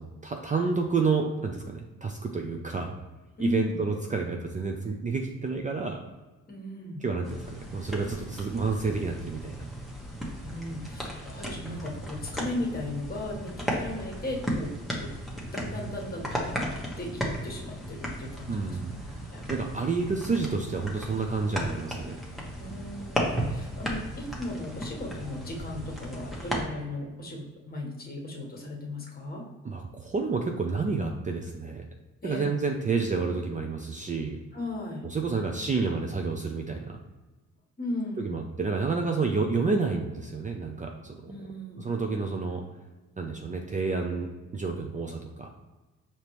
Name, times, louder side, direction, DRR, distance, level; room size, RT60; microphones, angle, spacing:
voice 1, 0.0-3.0 3.4-6.0 7.0-9.7 18.5-18.9 19.5-22.2 29.6-31.9 32.2-34.4 35.0-37.0 38.2-41.3 41.8-42.6 43.2-45.5, right 4 dB, 25° right, 3 dB, 0.5 m, -29 dB
voice 2, 3.4-3.8 6.5-7.0 10.4-15.1 15.5-16.6 17.0-18.8 19.3-19.5 22.6-29.4 32.2-32.6 34.5-35.1 37.8-38.4 41.2-41.9, left 2 dB, 30° left, -1 dB, 1.3 m, -36 dB
sound 1, 7.2-26.6, equal, ahead, 1.0 m, -35 dB
5.0 x 2.9 x 3.1 m, 1.2 s
cardioid pair, 90°, 30 cm